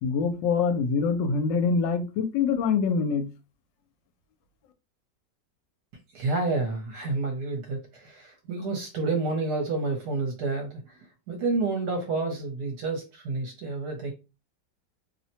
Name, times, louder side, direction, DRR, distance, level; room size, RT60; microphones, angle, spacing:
voice 1, 0.0-3.3, left 5 dB, 85° left, 1.2 m, -25 dB
voice 2, 6.1-11.0 11.3-14.1, right 3 dB, 70° right, 1.1 m, -29 dB
2.9 x 2.1 x 2.7 m
omnidirectional pair, 1.9 m